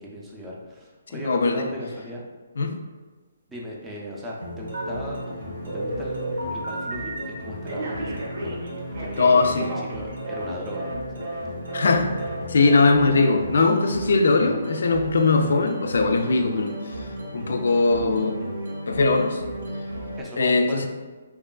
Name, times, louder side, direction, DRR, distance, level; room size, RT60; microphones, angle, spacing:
voice 1, 0.0-2.3 3.5-7.1 7.4-8.7 9.0-11.2 17.7-17.8 20.2-20.9, equal, 10° right, -4 dB, 0.3 m, -37 dB
voice 2, 1.1-1.7 2.6-2.7 9.2-9.7 11.7-12.1 12.5-17.1 17.3-18.4 18.9-19.4 20.4-20.9, left 3 dB, 70° left, 5 dB, 0.3 m, -20 dB
sound 1, 4.4-20.2, right 1 dB, 85° right, 0.9 m, -35 dB
Telephone, 4.7-5.3 5.7-7.3 7.7-10.5 10.7-11.0 11.2-11.4 11.7-11.9 12.2-12.4 12.6-12.9 13.1-13.3, right 1 dB, 60° right, 0.6 m, -33 dB
2.9 x 2.3 x 2.2 m, 1.3 s
hypercardioid pair, 165°, 0 cm